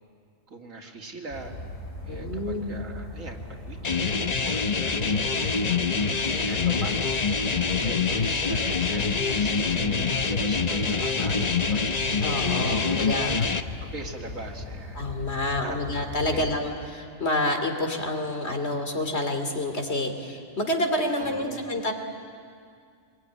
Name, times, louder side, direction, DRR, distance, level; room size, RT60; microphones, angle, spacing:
voice 1, 0.5-1.6 2.0-5.5 6.1-11.9 12.4-13.5 13.9-15.0 15.6-15.8 16.3-16.5 21.2-21.7, right 2 dB, 85° right, 1 dB, 2.9 m, -42 dB
sound 1, 1.3-16.6, left 1 dB, 70° left, 3.5 m, -39 dB
voice 2, 2.1-2.8 12.2-13.3 15.0-21.9, left 1 dB, 55° left, 5 dB, 3.1 m, -28 dB
sound 2, 3.8-13.6, left 5 dB, 35° left, 0.9 m, -25 dB
26.0 x 22.0 x 9.9 m, 2.2 s
omnidirectional pair, 1.4 m